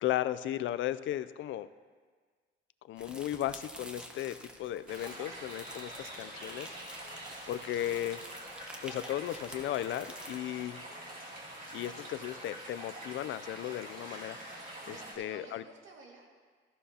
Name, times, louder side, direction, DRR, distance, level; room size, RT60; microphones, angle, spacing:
voice 1, 0.0-1.7 2.9-6.7 7.5-8.2 8.8-10.8 11.7-14.4 14.9-15.6, left 13 dB, 75° left, 14 dB, 0.5 m, -35 dB
sound 1, 3.0-10.4, equal, 5° right, 1.1 m, -50 dB
sound 2, 4.9-15.1, right 1 dB, 45° right, 2.8 m, -45 dB
voice 2, 14.9-16.3, right 3 dB, 85° right, 0 dB, 2.0 m, -51 dB
14.0 x 11.0 x 2.9 m, 1.5 s
cardioid pair, 90°, 20 cm